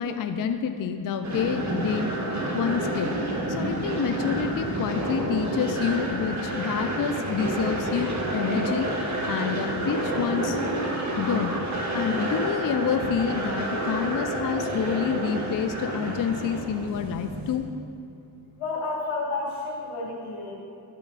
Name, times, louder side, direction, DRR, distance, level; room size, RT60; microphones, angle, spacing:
voice 1, 0.0-2.1 2.5-3.1 3.5-8.9 9.3-10.6 11.2-11.6 11.9-17.7, left 7 dB, 45° left, 8 dB, 0.5 m, -28 dB
sound 1, 1.2-17.6, right 1 dB, 35° right, 1.6 m, -29 dB
voice 2, 18.6-20.5, left 3 dB, 85° left, -3 dB, 2.1 m, -31 dB
13.0 x 4.4 x 4.1 m, 2.7 s
cardioid pair, 70°, 49 cm